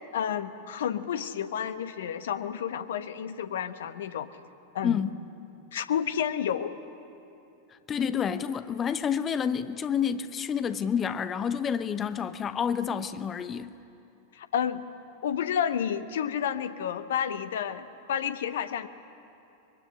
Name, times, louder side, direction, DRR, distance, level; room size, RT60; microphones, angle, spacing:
voice 1, 0.1-4.3 4.7-5.0 5.7-6.8 14.3-14.8 15.2-18.9, left 8 dB, 60° left, 1.2 m, -30 dB
voice 2, 7.9-13.7, left 7 dB, 25° left, 0.9 m, -29 dB
24.5 x 23.0 x 9.9 m
figure-of-eight pair, 90°, 0 cm